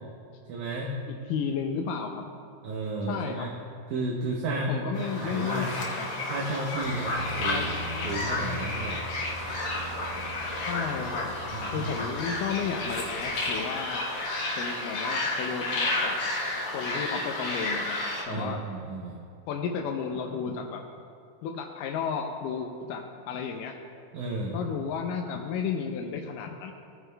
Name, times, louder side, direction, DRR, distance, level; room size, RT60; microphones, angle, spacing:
voice 1, 0.5-0.9 2.6-3.6 3.9-5.8 6.3-7.7 8.0-9.0 11.5-11.9 18.3-19.2 24.1-24.6, right 2 dB, 75° right, -1 dB, 1.9 m, -33 dB
voice 2, 1.3-2.2 3.1-3.5 4.7-6.1 7.5-7.7 10.5-11.4 11.7-14.1 14.6-16.2 16.7-18.0 18.3-18.6 19.5-20.9 21.4-23.8 24.5-26.7, left 6 dB, 80° left, 2 dB, 2.0 m, -33 dB
sound 1, 4.9-18.2, left 2 dB, 60° left, 2.2 m, -31 dB
Aircraft, 6.8-13.7, left 1 dB, 40° left, 1.7 m, -41 dB
17.0 x 9.3 x 2.2 m, 2.4 s
omnidirectional pair, 4.3 m